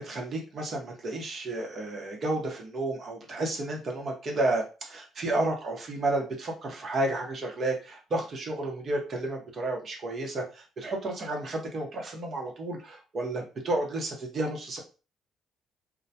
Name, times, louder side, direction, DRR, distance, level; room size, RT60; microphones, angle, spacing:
voice 1, 0.0-14.8, right 2 dB, 50° right, 1 dB, 0.9 m, -31 dB
2.2 x 2.1 x 2.7 m, 0.32 s
hypercardioid pair, 55°, 0 cm